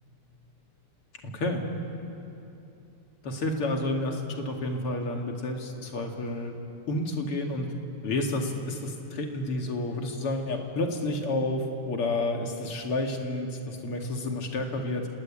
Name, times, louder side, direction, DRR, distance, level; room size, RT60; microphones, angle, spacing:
voice 1, 1.2-1.6 3.2-6.5 6.9-7.7 8.0-15.1, left 2 dB, 85° left, 2 dB, 3.2 m, -30 dB
29.5 x 19.5 x 8.8 m, 2.8 s
omnidirectional pair, 2.4 m